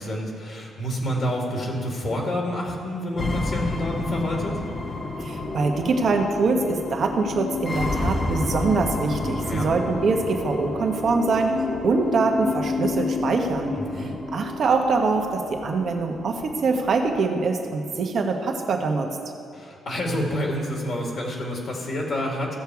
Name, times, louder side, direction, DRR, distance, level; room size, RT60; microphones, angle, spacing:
voice 1, 0.0-4.6 9.4-9.7 13.7-14.1 19.5-22.6, equal, 50° left, -1 dB, 2.1 m, -28 dB
sound 1, 3.2-17.2, left 3 dB, 35° left, 1.2 m, -30 dB
voice 2, 5.2-19.2, right 4 dB, 55° right, 3 dB, 1.3 m, -24 dB
15.0 x 6.8 x 4.8 m, 2.4 s
cardioid pair, 90°, 0 cm